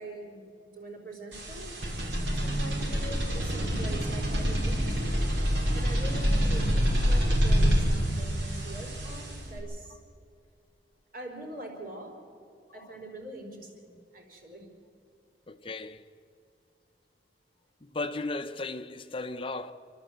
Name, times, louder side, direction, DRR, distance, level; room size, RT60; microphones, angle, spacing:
voice 1, 0.0-2.1 2.4-5.2 5.7-6.8 7.0-10.0 11.1-12.2 12.7-14.7, right 1 dB, 50° right, 4.4 m, -43 dB
sound 1, 1.3-9.6, equal, 80° right, 4.8 m, -27 dB
voice 2, 15.5-16.1 17.9-19.7, left 2 dB, 30° left, 0.6 m, -35 dB
29.0 x 12.0 x 8.0 m
head